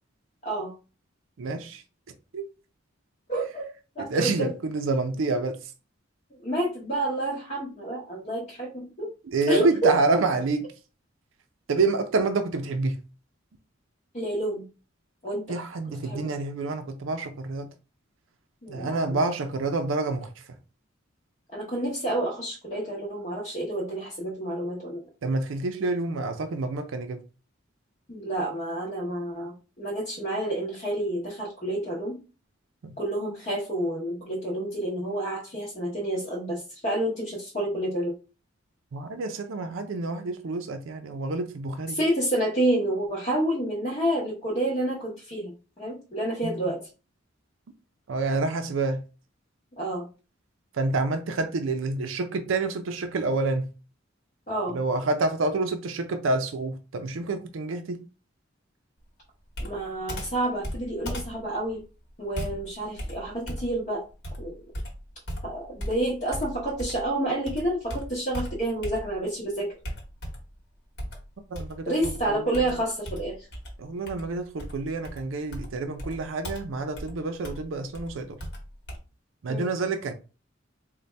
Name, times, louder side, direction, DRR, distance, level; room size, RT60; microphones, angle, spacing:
voice 1, 1.4-1.8 2.3-2.4 4.1-5.6 9.3-10.6 11.7-13.0 15.5-17.7 18.7-20.3 25.2-27.2 32.8-32.9 38.9-42.0 46.4-46.5 48.1-49.0 50.8-53.7 54.7-58.0 71.5-71.9 72.5-72.6 73.8-78.4 79.4-80.1, right 3 dB, 75° right, 0.5 m, -28 dB
voice 2, 3.3-3.6 4.0-4.5 6.4-9.1 9.5-10.0 14.1-14.6 15.2-15.6 16.0-16.3 18.6-19.2 21.5-25.0 28.1-32.2 33.0-38.1 41.9-46.8 49.8-50.1 54.5-54.8 59.6-61.8 62.2-64.0 64.4-64.5 65.4-69.7 71.9-73.5 79.5-79.7, right 1 dB, 35° left, 0.9 m, -29 dB
Computer keyboard, 59.5-67.1 67.5-69.4 69.8-70.6 71.0-79.0, equal, 60° left, 1.1 m, -37 dB
4.0 x 2.2 x 3.2 m
head